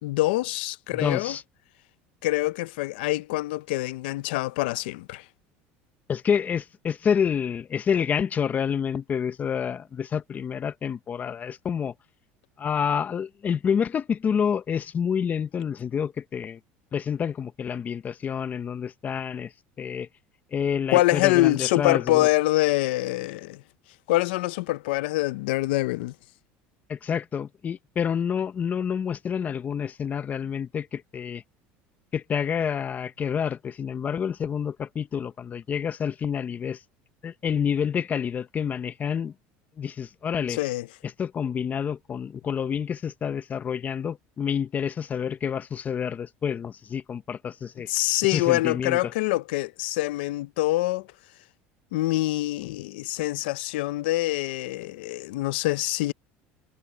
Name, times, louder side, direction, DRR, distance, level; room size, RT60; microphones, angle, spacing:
voice 1, 0.0-1.4 2.2-5.2 20.9-23.6 24.1-26.1 40.5-40.9 47.9-51.1 51.9-56.1, left 18 dB, 90° left, 0.7 m, -25 dB
voice 2, 0.9-1.4 6.1-11.9 12.6-16.6 16.9-19.5 19.8-20.1 20.5-22.3 26.9-31.4 32.1-36.8 37.2-39.3 39.8-40.6 41.2-47.9 48.3-49.1, left 7 dB, 30° left, 1.0 m, -28 dB
supercardioid pair, 120°, 5 cm